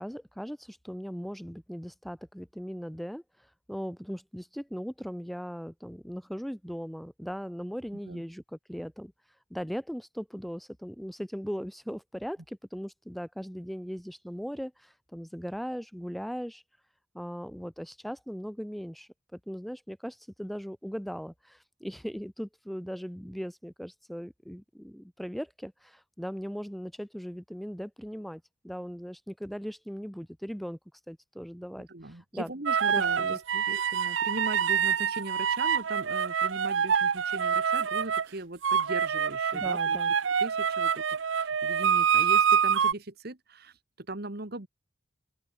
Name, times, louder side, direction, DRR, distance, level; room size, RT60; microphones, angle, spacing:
voice 1, 0.0-3.2 3.7-9.1 9.5-16.6 17.1-30.8 31.1-32.5 32.9-33.6 39.5-40.1, equal, ahead, 0.6 m, -39 dB
voice 2, 31.9-44.7, right 2 dB, 55° right, 1.9 m, -39 dB
sound 1, 32.7-38.3 38.6-42.9, right 7 dB, 85° right, 0.7 m, -26 dB
open air
head